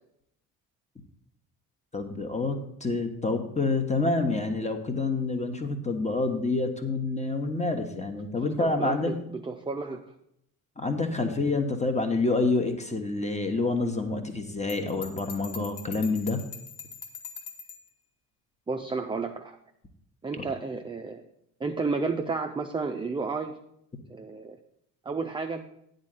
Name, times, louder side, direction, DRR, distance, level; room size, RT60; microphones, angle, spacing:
voice 1, 1.9-9.1 10.8-16.4 20.4-20.5, left 3 dB, 15° left, 6 dB, 1.2 m, -28 dB
voice 2, 8.5-10.1 18.7-19.6 20.2-21.2 21.6-23.6 24.1-24.6 25.0-25.6, right 4 dB, 10° right, 4 dB, 0.5 m, -32 dB
Bell, 14.7-17.9, left 6 dB, 65° left, 1.2 m, -43 dB
9.6 x 4.0 x 7.4 m, 0.75 s
hypercardioid pair, 50°, 44 cm